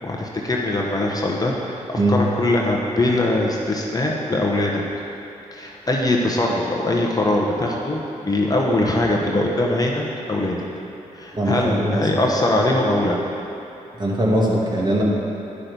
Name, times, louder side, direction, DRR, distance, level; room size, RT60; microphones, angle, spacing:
voice 1, 0.0-4.8 5.5-10.6 11.1-13.2, left 1 dB, 25° left, -2 dB, 1.2 m, -22 dB
voice 2, 11.3-12.1 14.0-15.0, right 1 dB, 30° right, -4 dB, 2.1 m, -20 dB
9.7 x 5.9 x 5.4 m, 2.9 s
supercardioid pair, 50°, 15 cm